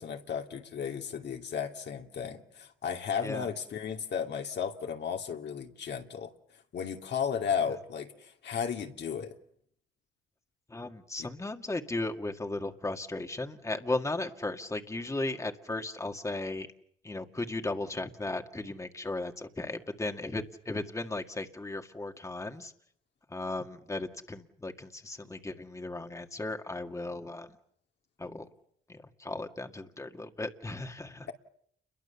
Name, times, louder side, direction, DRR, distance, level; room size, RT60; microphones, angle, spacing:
voice 1, 0.0-6.3 6.7-9.4, left 7 dB, 60° left, 2.6 m, -34 dB
voice 2, 10.7-16.7 17.0-22.7 23.3-27.6 28.2-28.5 28.9-31.3, left 2 dB, 15° left, 2.0 m, -36 dB
29.5 x 22.5 x 7.1 m
cardioid pair, 90°, 20 cm